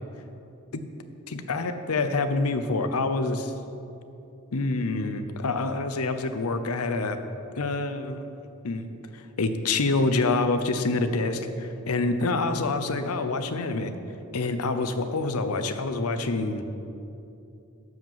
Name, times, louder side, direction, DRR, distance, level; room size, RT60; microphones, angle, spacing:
voice 1, 1.3-3.5 4.5-7.2 7.6-8.3 8.6-8.8 9.1-13.9 14.3-16.6, left 3 dB, 85° left, 9 dB, 0.7 m, -27 dB
12.0 x 5.1 x 7.4 m, 2.8 s
head